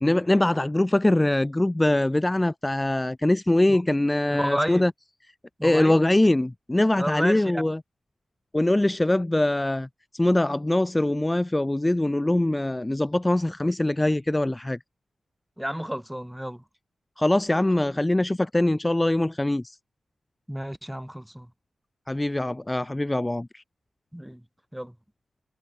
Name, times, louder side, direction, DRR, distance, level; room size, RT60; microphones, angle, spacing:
voice 1, 0.0-4.9 5.6-7.8 8.5-9.9 10.1-14.8 17.2-19.6 22.1-23.6, left 1 dB, 20° left, 0.4 m, -23 dB
voice 2, 4.3-4.9 5.6-6.0 7.0-7.7 15.6-16.6 20.5-21.5 24.1-24.4 24.7-24.9, equal, 5° right, 0.7 m, -31 dB
cardioid pair, 45°, 0 cm